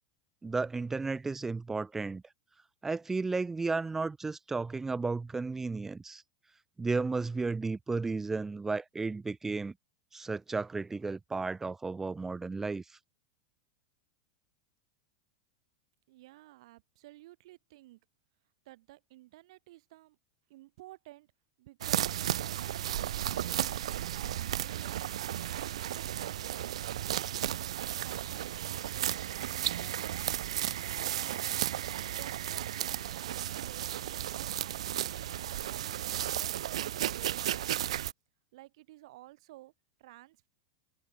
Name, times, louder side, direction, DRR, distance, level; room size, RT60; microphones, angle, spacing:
voice 1, 0.4-2.2 2.8-6.2 6.8-9.7 10.1-12.8, right 3 dB, 10° right, 0.5 m, -33 dB
voice 2, 16.1-18.0 18.7-20.2 20.5-21.3 21.6-22.2 22.4-23.7 24.1-25.2 25.5-27.3 27.7-29.2 29.6-31.7 32.1-33.9 34.3-37.8 38.5-39.7 40.0-40.5, right 18 dB, 70° right, 1.9 m, -54 dB
sound 1, 21.8-38.1, right 11 dB, 85° right, 0.4 m, -34 dB
supercardioid pair, 125°, 3 cm